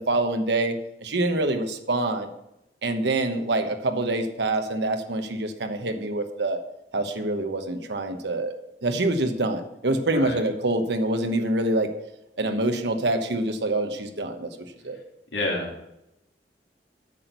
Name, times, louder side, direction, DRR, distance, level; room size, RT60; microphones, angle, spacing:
voice 1, 0.1-0.7 1.0-2.3 2.8-6.6 6.9-11.9 12.4-15.0, right 2 dB, 65° right, 7 dB, 1.0 m, -26 dB
voice 2, 15.3-15.8, left 2 dB, 75° left, -1 dB, 2.5 m, -29 dB
8.6 x 6.1 x 6.6 m, 0.86 s
head